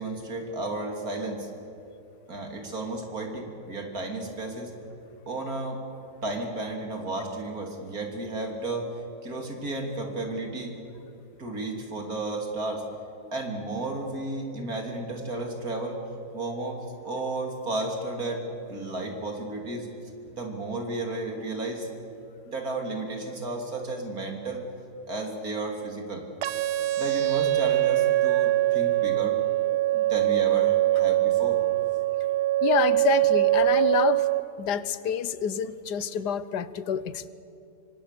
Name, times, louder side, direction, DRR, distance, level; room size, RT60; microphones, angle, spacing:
voice 1, 0.0-1.5 2.3-4.7 5.3-5.8 6.2-8.9 9.2-10.7 11.4-12.8 13.3-16.0 16.3-18.4 18.7-19.9 20.3-21.9 22.5-24.6 25.1-26.2 27.0-29.4 29.9-31.6, right 2 dB, 60° right, 2 dB, 3.5 m, -33 dB
sound 1, 26.4-34.4, right 15 dB, 80° right, 1.3 m, -23 dB
voice 2, 32.6-34.3 34.6-37.3, left 8 dB, 80° left, 15 dB, 1.4 m, -27 dB
26.0 x 24.5 x 6.8 m, 2.8 s
omnidirectional pair, 1.8 m